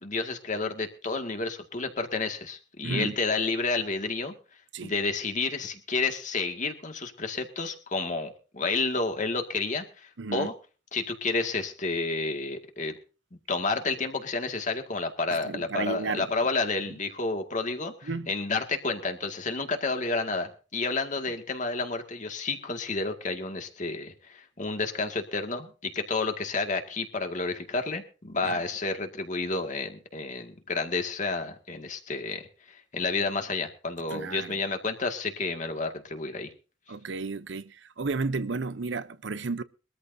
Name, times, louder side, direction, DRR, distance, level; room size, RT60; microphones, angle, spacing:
voice 1, 0.0-4.3 4.8-10.5 10.9-12.9 13.5-36.5, left 3 dB, 40° left, 2.0 m, -30 dB
voice 2, 2.8-3.1 4.7-4.9 10.2-10.5 15.4-16.3 18.1-18.3 28.4-28.6 34.1-34.6 36.9-39.6, right 3 dB, 70° right, 0.7 m, -32 dB
22.5 x 13.5 x 2.7 m
head